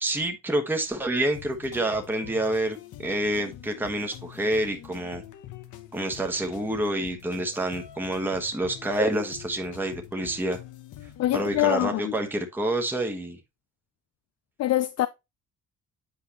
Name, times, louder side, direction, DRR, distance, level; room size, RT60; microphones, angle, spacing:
voice 1, 0.0-5.2 5.9-10.6 11.3-13.4, right 1 dB, 5° right, 1.2 m, -28 dB
sound 1, 1.3-11.8, left 11 dB, 85° left, 0.9 m, -45 dB
voice 2, 11.2-12.1 14.6-15.1, left 15 dB, 60° left, 0.4 m, -24 dB
8.2 x 4.7 x 2.8 m
cardioid pair, 90°, 30 cm